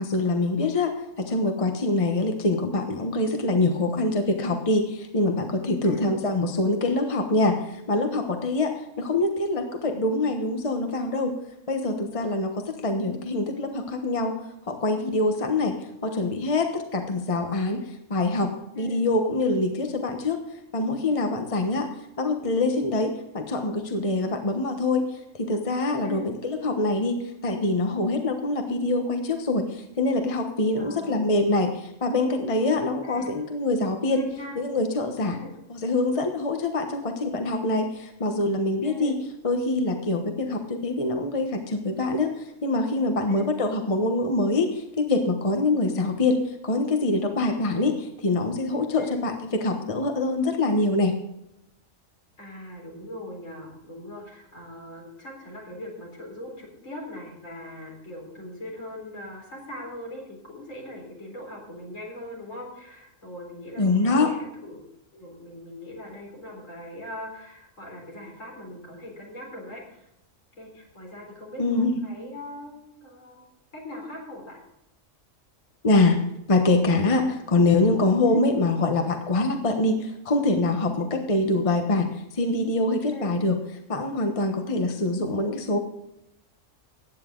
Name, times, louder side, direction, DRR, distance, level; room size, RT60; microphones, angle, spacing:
voice 1, 0.0-11.3 11.7-14.3 14.7-15.7 16.0-17.8 18.1-20.4 20.7-21.9 22.2-25.1 25.3-34.2 34.6-35.4 35.7-39.2 39.4-42.3 42.6-49.3 49.6-51.2 63.8-64.3 71.6-72.0 75.8-76.2 76.5-83.6 83.9-85.8, left 2 dB, 25° left, 5 dB, 1.1 m, -24 dB
voice 2, 30.8-31.3 33.0-33.4 34.1-34.6 35.3-35.5 38.8-39.1 43.3-43.5 49.0-49.2 52.4-64.8 65.1-70.1 70.6-73.4 73.7-74.6 78.3-78.4 81.0-81.1 83.1-83.3, left 1 dB, 75° left, -1 dB, 4.4 m, -41 dB
15.5 x 9.5 x 3.8 m, 0.84 s
omnidirectional pair, 1.3 m